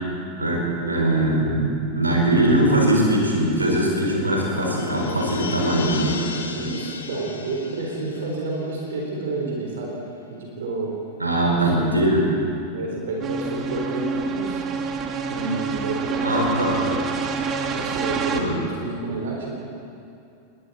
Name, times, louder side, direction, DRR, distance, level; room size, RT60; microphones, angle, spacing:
voice 1, 0.4-6.2 11.2-12.3 16.2-16.8 18.3-18.6, right 1 dB, 80° right, -1 dB, 4.7 m, -21 dB
sound 1, 2.8-9.8 10.1-10.2, left 5 dB, 70° left, 2.2 m, -36 dB
voice 2, 6.5-9.9 10.3-11.0 11.5-12.2 12.7-14.6 15.3-17.0 17.7-19.5, right 2 dB, 60° right, -1 dB, 4.1 m, -30 dB
sound 2, 13.2-18.4, right 5 dB, 30° right, 2.2 m, -27 dB
30.0 x 21.0 x 4.3 m, 2.6 s
figure-of-eight pair, 90°, 0 cm